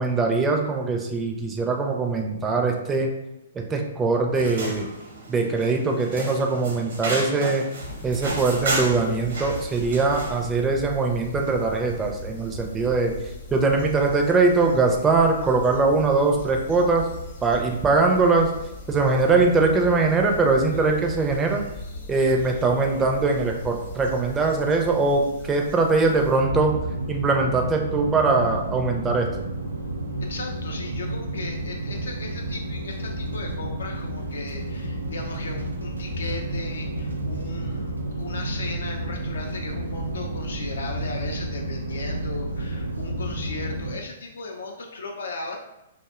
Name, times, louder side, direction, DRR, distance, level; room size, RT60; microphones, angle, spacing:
voice 1, 0.0-3.1 3.7-4.9 5.3-7.6 8.0-13.1 13.5-17.1 17.4-18.5 18.9-21.6 22.1-26.7 27.1-29.3, right 3 dB, 15° right, 2 dB, 0.4 m, -22 dB
sound 1, 4.3-10.5, right 2 dB, 70° right, 0.8 m, -32 dB
sound 2, 7.8-26.4, left 1 dB, 55° left, 0.7 m, -38 dB
sound 3, 26.4-44.0, right 1 dB, 90° right, 0.3 m, -31 dB
voice 2, 30.2-45.6, left 3 dB, 75° left, 1 dB, 0.3 m, -37 dB
2.6 x 2.0 x 2.4 m, 0.92 s
hypercardioid pair, 120°, 0 cm